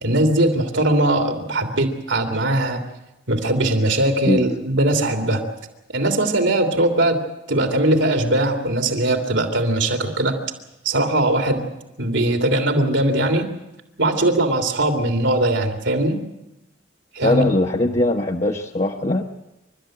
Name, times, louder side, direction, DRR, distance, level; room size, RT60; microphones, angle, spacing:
voice 1, 0.0-2.8 3.3-5.4 5.9-7.2 7.5-10.4 10.8-11.6 12.0-13.5 14.0-16.2 17.1-17.5, right 1 dB, 80° right, 5 dB, 3.0 m, -20 dB
voice 2, 17.2-19.2, left 1 dB, 35° left, 1 dB, 1.1 m, -20 dB
28.5 x 13.0 x 9.0 m, 0.94 s
head